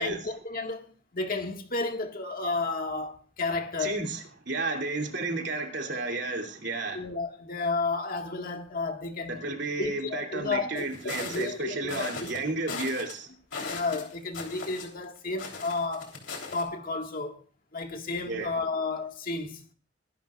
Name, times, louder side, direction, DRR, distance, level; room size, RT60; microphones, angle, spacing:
voice 1, 0.0-4.0 6.9-9.4 9.8-12.3 13.7-16.2 16.5-17.4 17.7-19.6, left 3 dB, 50° left, 1.9 m, -32 dB
voice 2, 3.8-7.1 9.3-13.3 18.2-18.5, right 2 dB, 65° right, 2.8 m, -32 dB
sound 1, 10.8-11.5 11.9-12.4 12.7-13.1 13.5-15.0 15.4-16.6, left 4 dB, 70° left, 3.5 m, -38 dB
23.0 x 12.0 x 2.5 m
head